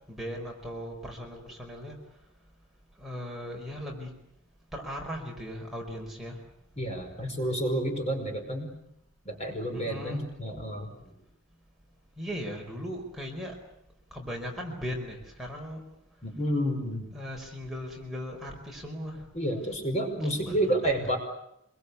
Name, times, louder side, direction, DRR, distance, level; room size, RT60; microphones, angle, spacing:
voice 1, 0.1-2.0 3.0-4.1 4.7-6.4 9.7-10.2 12.2-13.5 14.1-15.8 17.1-19.3 20.4-20.9, equal, ahead, -1 dB, 4.9 m, -38 dB
voice 2, 6.8-8.7 9.2-11.1 16.2-17.1 19.3-21.2, right 1 dB, 30° left, 3 dB, 5.2 m, -30 dB
26.0 x 23.5 x 8.4 m, 0.79 s
head